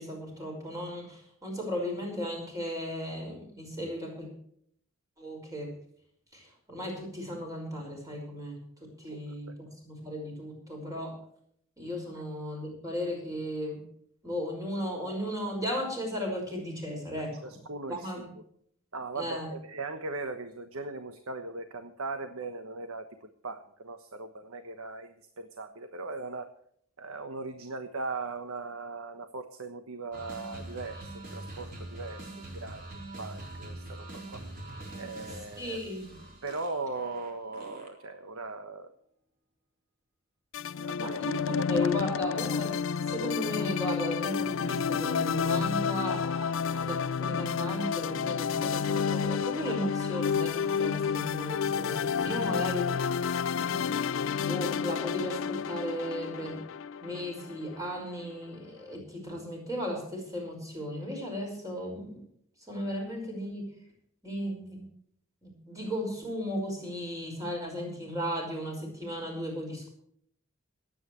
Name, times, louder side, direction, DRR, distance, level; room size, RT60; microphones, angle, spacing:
voice 1, 0.0-4.3 5.2-5.7 6.3-8.6 9.0-11.1 11.8-13.8 14.2-17.3 17.9-18.3 19.1-19.5 35.6-36.1 41.0-54.0 54.4-56.6 57.0-62.2 62.7-63.6 64.2-64.8 65.4-69.9, equal, 15° right, 0 dB, 5.5 m, -36 dB
voice 2, 9.0-9.5 12.1-12.2 17.2-18.4 18.9-26.5 27.0-34.4 34.9-35.8 36.4-38.9 40.7-41.2 41.5-41.9, right 3 dB, 85° right, 7 dB, 1.2 m, -39 dB
sound 1, 30.1-38.2, right 1 dB, 40° right, 4.0 m, -44 dB
sound 2, 40.5-57.9, left 6 dB, 65° left, 0.4 m, -30 dB
27.0 x 9.2 x 3.2 m, 0.66 s
head